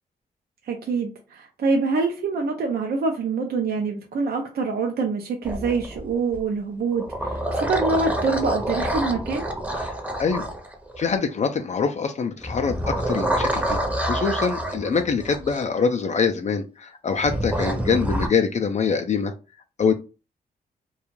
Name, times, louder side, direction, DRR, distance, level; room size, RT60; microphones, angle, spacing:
voice 1, 0.6-9.5, right 4 dB, 65° right, 3 dB, 0.5 m, -25 dB
sound 1, 5.4-6.4 6.9-11.2 12.4-15.6 17.2-18.3, right 1 dB, 10° right, 0.7 m, -27 dB
voice 2, 9.8-10.5 11.0-19.3 19.8-19.9, left 5 dB, 45° left, 6 dB, 0.4 m, -24 dB
2.4 x 2.3 x 3.0 m, 0.32 s
cardioid pair, 60°, 17 cm